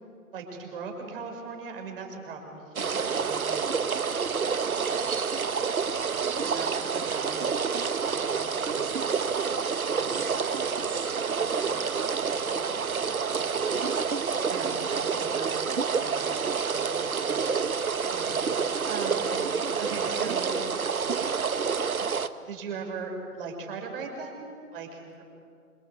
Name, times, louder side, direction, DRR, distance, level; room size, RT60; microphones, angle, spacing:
voice 1, 0.3-5.9 6.4-9.0 9.6-10.6 14.5-19.3 19.8-20.6 22.4-24.4 24.7-25.2, right 4 dB, 40° right, 3 dB, 6.2 m, -40 dB
Streem creek birds forest, 2.8-22.3, right 5 dB, 65° right, 1.4 m, -28 dB
voice 2, 11.0-14.0, equal, 5° left, -2 dB, 1.3 m, -51 dB
27.5 x 26.0 x 8.2 m, 2.3 s
figure-of-eight pair, 140°, 45 cm